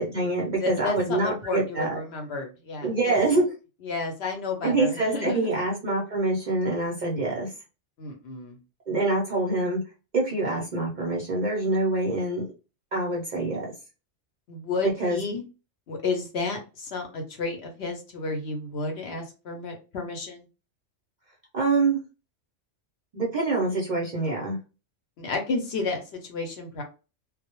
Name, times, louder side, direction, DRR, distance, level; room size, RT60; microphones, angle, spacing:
voice 1, 0.0-2.0 2.8-3.4 4.6-7.5 8.9-9.8 10.1-12.4 12.9-13.7 14.8-15.2 21.5-22.0 23.1-24.6, right 2 dB, 50° right, -2 dB, 0.6 m, -25 dB
voice 2, 0.6-3.1 3.8-5.5 8.0-8.6 14.5-15.4 15.9-20.5 25.2-26.8, left 3 dB, 65° left, 3 dB, 0.8 m, -31 dB
2.1 x 2.0 x 2.9 m, 0.31 s
omnidirectional pair, 1.3 m